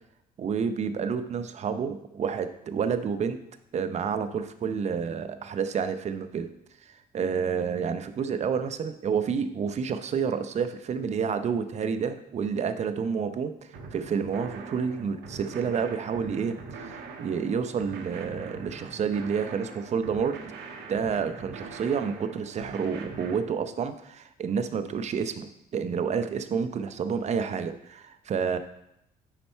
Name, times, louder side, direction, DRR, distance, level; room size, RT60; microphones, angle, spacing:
voice 1, 0.4-3.4 3.7-6.5 6.8-16.6 16.8-20.4 20.9-28.6, right 6 dB, 40° right, 9 dB, 0.7 m, -29 dB
sound 1, 13.7-23.4, right 4 dB, 75° right, 1.3 m, -42 dB
10.0 x 4.2 x 4.5 m, 0.81 s
cardioid pair, 110°, 17 cm